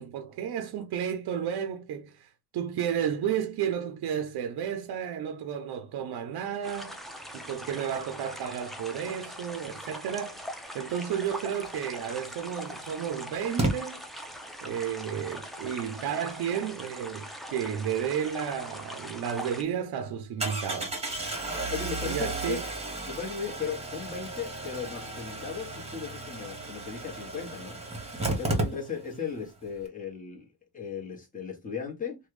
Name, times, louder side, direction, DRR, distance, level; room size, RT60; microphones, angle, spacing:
voice 1, 0.0-7.0 7.3-10.4 10.7-14.0 14.6-21.0 22.0-22.6, right 8 dB, 70° right, 0.5 m, -32 dB
sound 1, 6.6-19.6, equal, ahead, 0.4 m, -41 dB
Engine starting, 12.1-12.2 13.6-13.7 18.8-18.9 19.2-19.3 20.4-29.2 29.5-29.6 29.8-29.9, right 2 dB, 15° right, 1.1 m, -33 dB
voice 2, 21.7-22.6 23.1-27.8 28.3-30.5 30.7-32.2, left 6 dB, 20° left, 1.1 m, -36 dB
3.1 x 2.2 x 3.1 m
wide cardioid pair, 135°, 39 cm